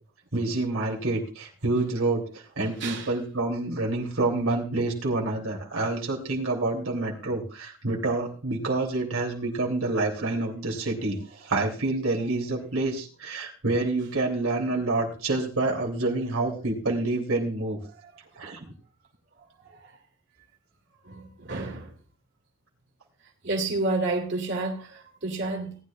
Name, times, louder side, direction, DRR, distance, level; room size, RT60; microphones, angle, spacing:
voice 1, 0.3-11.2 11.4-17.8 18.4-18.7, right 2 dB, 90° right, 1 dB, 3.1 m, -27 dB
voice 2, 2.8-3.1 19.6-19.9 21.0-21.9 23.4-25.8, right 2 dB, 55° right, -1 dB, 2.7 m, -30 dB
19.0 x 10.5 x 2.5 m, 0.35 s
head